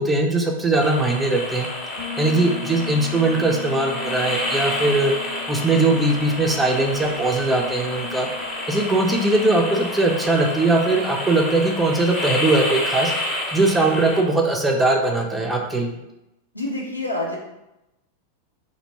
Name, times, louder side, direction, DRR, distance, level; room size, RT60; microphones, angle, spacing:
voice 1, 0.0-1.7 2.2-5.1 5.5-8.3 8.7-13.1 13.5-16.0, right 2 dB, 10° right, 2 dB, 0.4 m, -20 dB
sound 1, 0.8-14.2, left 1 dB, 25° left, 0.7 m, -29 dB
Bass guitar, 2.0-11.6, left 5 dB, 90° right, 0.6 m, -40 dB
voice 2, 16.5-17.4, left 2 dB, 90° left, -3 dB, 0.6 m, -27 dB
2.5 x 2.1 x 2.9 m, 0.91 s
figure-of-eight pair, 90°, 0 cm